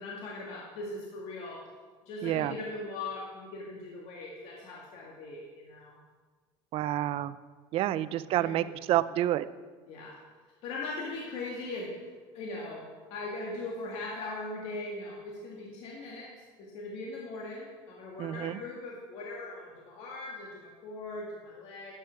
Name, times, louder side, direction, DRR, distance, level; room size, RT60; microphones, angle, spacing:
voice 1, 0.0-1.6 2.1-6.0 7.9-8.7 9.9-10.2 10.6-11.9 12.3-12.9 13.1-16.3 16.6-21.9, left 2 dB, 65° left, -3 dB, 2.2 m, -40 dB
voice 2, 2.2-2.5 6.7-7.4 7.7-9.5 18.2-18.6, right 13 dB, 55° right, 15 dB, 0.5 m, -29 dB
12.0 x 9.1 x 4.7 m, 1.4 s
supercardioid pair, 120°, 12 cm